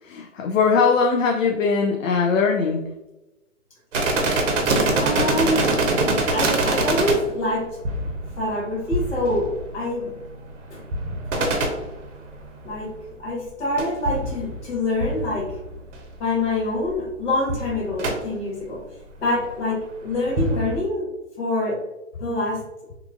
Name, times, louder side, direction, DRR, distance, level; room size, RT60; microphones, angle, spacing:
voice 1, 0.0-2.9, left 5 dB, 75° left, 2 dB, 0.5 m, -20 dB
sound 1, 3.9-12.8 13.8-16.1 16.4-16.5 16.8-17.1 17.5-18.2 19.3-19.5 20.1-20.8, right 2 dB, 65° right, 0.7 m, -25 dB
voice 2, 5.0-5.8 6.3-7.7 8.4-9.5 9.7-10.1 10.7-10.8 11.3-11.6 12.6-12.9 13.2-15.5 16.2-18.8 19.2-21.1 21.4-21.8 22.2-22.6, left 2 dB, 60° left, -3 dB, 1.4 m, -25 dB
2.9 x 2.3 x 2.4 m, 0.98 s
hypercardioid pair, 145°, 39 cm